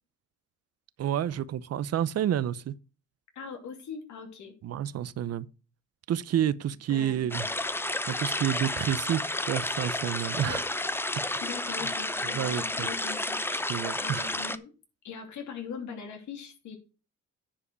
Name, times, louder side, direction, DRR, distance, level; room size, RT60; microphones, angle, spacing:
voice 1, 1.0-2.7 4.6-5.5 6.1-7.5 8.1-10.7 11.7-11.9 12.3-12.9 13.7-14.3, right 10 dB, 55° right, 0.7 m, -29 dB
voice 2, 3.3-4.5 6.9-7.5 10.4-10.7 11.4-13.7 14.0-14.7 15.0-16.8, left 6 dB, 70° left, 2.8 m, -41 dB
sound 1, 7.3-14.6, left 2 dB, 10° left, 0.6 m, -31 dB
10.0 x 4.8 x 6.1 m
cardioid pair, 90°, 30 cm